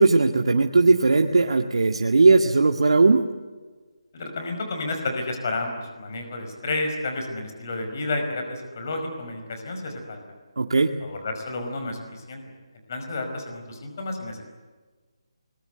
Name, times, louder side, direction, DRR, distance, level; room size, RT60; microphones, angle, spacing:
voice 1, 0.0-3.2 10.6-10.9, right 3 dB, 75° right, 4 dB, 2.0 m, -18 dB
voice 2, 4.1-10.2 11.0-12.4 12.9-14.4, left 2 dB, 30° left, 5 dB, 5.2 m, -31 dB
30.0 x 22.0 x 8.1 m, 1.4 s
hypercardioid pair, 175°, 3 cm